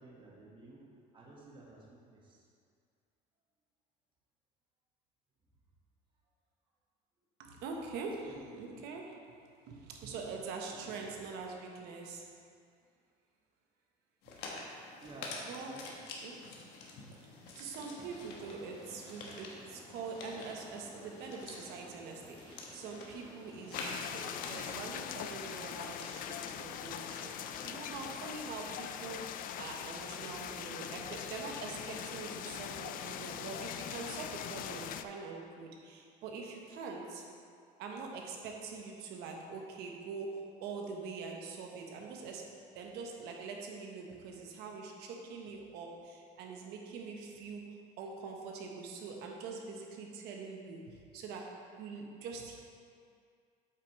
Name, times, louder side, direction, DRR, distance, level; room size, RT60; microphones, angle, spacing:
voice 1, 0.0-2.4 8.2-8.4 15.0-16.0, right 2 dB, 30° right, -4 dB, 1.5 m, -53 dB
voice 2, 7.4-9.4 9.7-12.3 15.4-15.7 16.2-16.4 17.2-37.3 37.8-52.6, right 4 dB, 75° right, 1 dB, 1.1 m, -44 dB
sound 1, 14.2-27.5, left 3 dB, 75° left, 1.2 m, -48 dB
sound 2, 17.7-28.4, left 1 dB, 20° left, 1.2 m, -55 dB
sound 3, 23.7-35.0, left 9 dB, 55° left, 0.4 m, -42 dB
8.3 x 6.1 x 3.1 m, 2.3 s
cardioid pair, 115°, 17 cm